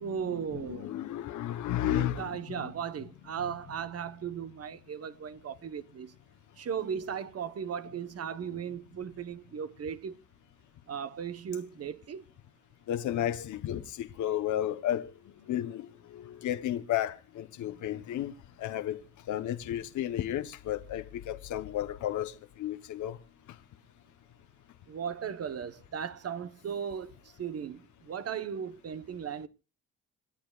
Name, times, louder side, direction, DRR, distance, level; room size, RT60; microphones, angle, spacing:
voice 1, 0.0-0.9 1.8-6.1 6.6-10.2 10.9-12.2 24.9-27.8 28.1-29.5, right 7 dB, 55° right, 1.0 m, -37 dB
voice 2, 0.8-2.3 2.6-2.7 12.9-15.1 15.5-18.3 18.6-19.0 19.3-23.2, left 12 dB, 75° left, 1.0 m, -32 dB
27.0 x 10.0 x 2.4 m
cardioid pair, 90°, 30 cm